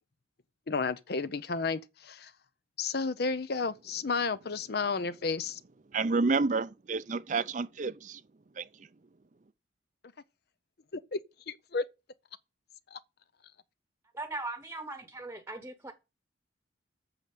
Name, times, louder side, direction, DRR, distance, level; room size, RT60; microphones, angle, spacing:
voice 1, 0.7-2.3 2.8-5.6 10.9-11.2 11.5-11.8 12.9-13.0, left 4 dB, 55° left, 0.6 m, -32 dB
voice 2, 5.9-8.2 8.6-8.7, right 4 dB, 40° right, 0.5 m, -29 dB
voice 3, 14.1-15.9, right 2 dB, 15° right, 1.0 m, -39 dB
8.6 x 6.7 x 7.6 m
head